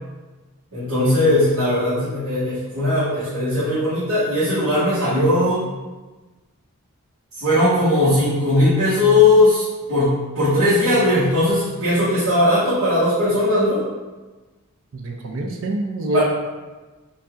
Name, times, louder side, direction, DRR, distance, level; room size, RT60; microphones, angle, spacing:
voice 1, 0.7-5.6 7.4-13.8 16.1-16.2, left 1 dB, 80° right, -15 dB, 1.4 m, -18 dB
voice 2, 14.9-16.2, right 1 dB, 60° right, 2 dB, 0.4 m, -26 dB
5.1 x 2.6 x 2.4 m, 1.2 s
head